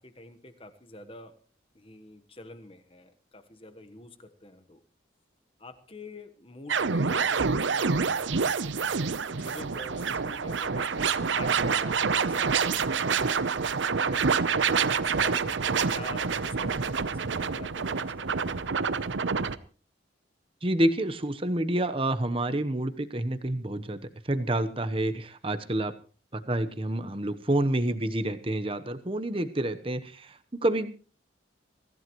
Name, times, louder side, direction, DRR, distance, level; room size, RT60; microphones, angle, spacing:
voice 1, 0.0-1.5 1.7-4.8 5.6-8.3 9.4-13.1 13.9-14.1 14.9-18.4, left 2 dB, 30° left, 9 dB, 1.2 m, -46 dB
sound 1, 6.7-19.6, right 5 dB, 80° right, 0.7 m, -27 dB
voice 2, 20.6-25.9 26.3-31.0, right 1 dB, 30° right, 10 dB, 1.0 m, -28 dB
24.0 x 15.0 x 3.1 m, 0.37 s
head